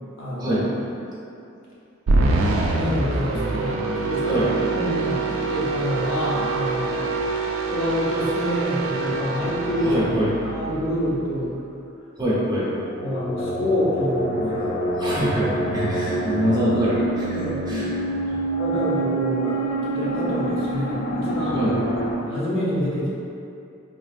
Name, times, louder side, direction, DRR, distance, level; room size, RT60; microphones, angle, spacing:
voice 1, 0.2-0.6 2.7-4.5 4.7-7.0 7.7-10.0 10.4-11.5 13.0-14.8 17.3-17.6 18.5-21.6 22.3-23.1, equal, 90° left, -7 dB, 0.8 m, -27 dB
sound 1, 2.1-11.4, right 3 dB, 85° right, 0.3 m, -25 dB
voice 2, 9.8-10.3 12.2-12.7 15.0-17.4 17.7-17.9 18.3-18.4 21.5-21.8, equal, 20° right, -8 dB, 0.6 m, -24 dB
sound 2, 12.8-22.2, right 1 dB, 45° left, 0.3 m, -27 dB
3.4 x 2.4 x 2.4 m, 2.7 s
head